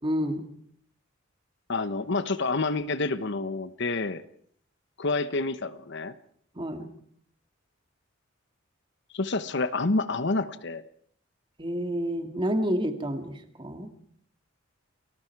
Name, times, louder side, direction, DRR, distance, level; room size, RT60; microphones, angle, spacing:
voice 1, 0.0-0.5 6.5-6.9 11.6-13.9, equal, 25° right, 6 dB, 2.3 m, -29 dB
voice 2, 1.7-4.2 5.0-6.1 9.1-10.8, left 3 dB, 60° left, 13 dB, 1.0 m, -28 dB
29.5 x 20.5 x 4.7 m, 0.62 s
head